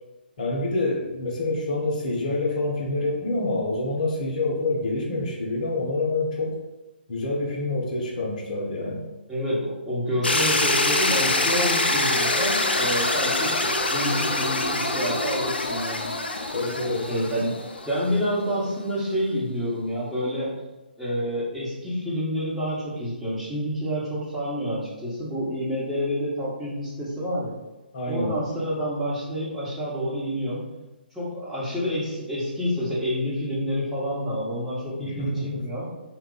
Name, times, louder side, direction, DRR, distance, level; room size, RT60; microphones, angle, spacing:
voice 1, 0.4-6.6 7.1-9.1 16.5-17.1 27.9-28.3 35.0-35.6, left 2 dB, 45° left, -1 dB, 0.8 m, -27 dB
voice 2, 9.3-13.6 13.9-16.2 17.1-17.6 17.8-20.5 21.0-27.5 28.1-30.6 31.1-35.8, equal, 5° right, -11 dB, 1.0 m, -28 dB
sound 1, 10.2-18.2, left 2 dB, 75° left, 0.4 m, -25 dB
2.9 x 2.3 x 3.8 m, 1.1 s
figure-of-eight pair, 135°, 6 cm